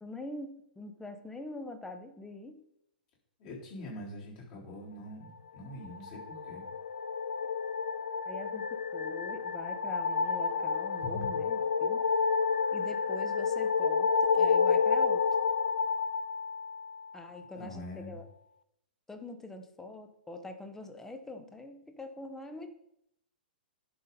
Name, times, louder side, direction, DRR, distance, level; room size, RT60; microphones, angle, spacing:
voice 1, 0.0-2.6 8.2-12.0 12.7-15.3 17.1-18.2 19.1-22.7, left 2 dB, 5° left, 7 dB, 0.9 m, -44 dB
voice 2, 3.4-6.6 11.0-11.3 17.6-18.2, left 1 dB, 40° left, -4 dB, 3.7 m, -43 dB
sound 1, 5.8-17.2, left 5 dB, 65° left, 0.5 m, -30 dB
11.0 x 5.2 x 4.0 m, 0.77 s
figure-of-eight pair, 110°, 5 cm